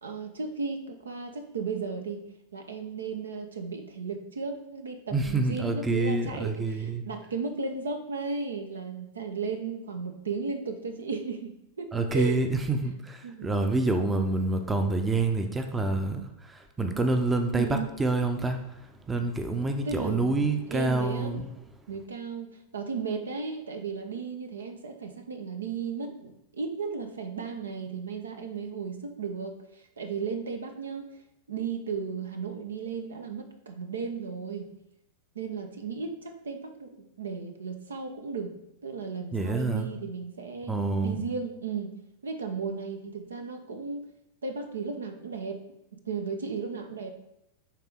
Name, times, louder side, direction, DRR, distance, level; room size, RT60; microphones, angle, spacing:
voice 1, 0.0-2.2 2.5-12.4 13.2-13.5 17.5-17.9 19.8-21.4 21.9-31.2 31.5-34.7 35.3-38.5 38.8-40.7 41.0-41.9 42.2-44.1 44.4-45.6 46.1-47.1, right 5 dB, 70° right, 6 dB, 0.7 m, -35 dB
voice 2, 5.1-7.0 11.9-21.5 39.3-39.9 40.7-41.3, right 2 dB, 15° right, 6 dB, 0.7 m, -27 dB
10.0 x 3.6 x 3.6 m, 0.83 s
figure-of-eight pair, 90°, 0 cm